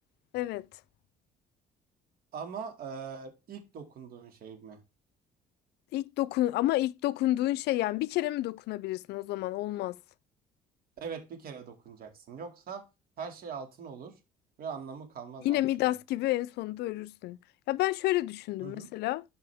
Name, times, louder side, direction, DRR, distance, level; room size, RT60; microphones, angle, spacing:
voice 1, 0.3-0.7 5.9-10.0 15.4-17.4 17.7-19.2, left 16 dB, 75° left, 0.4 m, -30 dB
voice 2, 2.3-4.8 11.0-12.8 13.2-14.2 14.6-15.9 18.6-18.9, right 6 dB, 60° right, 2.3 m, -42 dB
11.5 x 5.5 x 3.5 m
cardioid pair, 110°, 17 cm